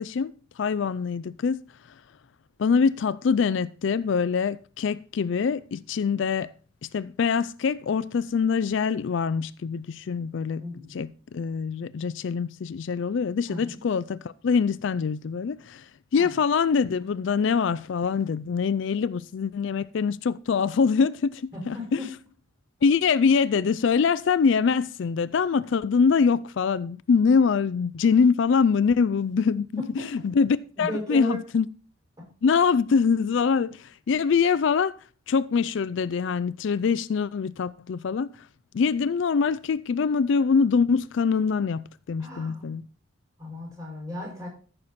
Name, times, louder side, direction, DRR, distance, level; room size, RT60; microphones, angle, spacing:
voice 1, 0.0-1.6 2.6-6.5 6.9-10.6 10.9-22.0 22.8-29.8 30.1-31.7 32.4-35.0 35.3-38.3 38.7-42.8, left 5 dB, 60° left, 0.4 m, -24 dB
voice 2, 10.6-11.0 13.5-13.8 16.1-16.3 21.5-22.1 29.8-30.1 30.8-31.4 42.2-42.8 43.4-44.5, left 2 dB, 15° right, 5.6 m, -35 dB
14.0 x 6.6 x 4.2 m
head